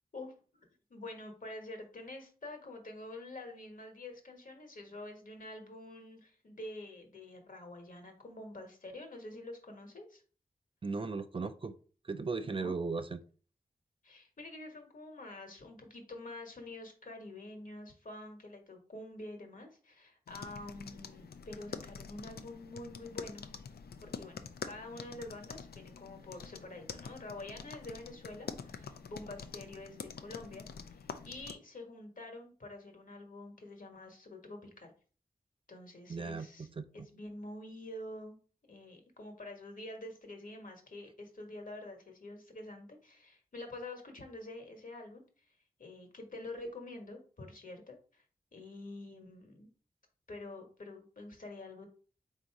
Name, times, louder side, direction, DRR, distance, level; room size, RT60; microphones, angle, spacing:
voice 1, 0.9-10.2 12.4-12.7 14.0-23.5 24.0-24.4 24.6-34.9 35.7-36.7 36.9-38.4 38.7-45.2 45.8-48.2 48.5-49.7 50.3-51.9, left 2 dB, 60° left, 4 dB, 1.2 m, -47 dB
voice 2, 10.8-11.7 12.1-13.2 36.1-36.8, right 4 dB, 35° right, 10 dB, 0.4 m, -37 dB
sound 1, 20.3-31.5, left 6 dB, 80° left, 0.4 m, -46 dB
3.8 x 2.7 x 4.6 m, 0.41 s
cardioid pair, 40°, 16 cm